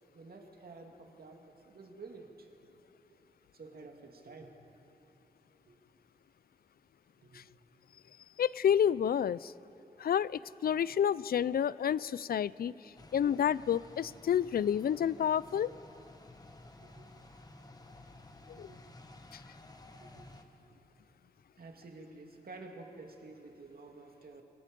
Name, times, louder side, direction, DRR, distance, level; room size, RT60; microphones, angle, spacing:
voice 1, 0.1-2.5 3.5-4.5 5.7-5.8 7.2-7.4 10.9-11.0 13.0-13.1 16.8-17.1 18.6-18.8 20.0-20.3 21.6-24.4, right 3 dB, 70° right, 2 dB, 2.3 m, -51 dB
voice 2, 8.4-9.5 10.0-15.7 18.5-18.7 19.3-19.4, left 9 dB, 70° left, 20 dB, 0.4 m, -30 dB
sound 1, 13.0-20.4, left 2 dB, 25° left, 1.3 m, -54 dB
27.0 x 18.0 x 5.3 m, 2.8 s
wide cardioid pair, 105°, 16 cm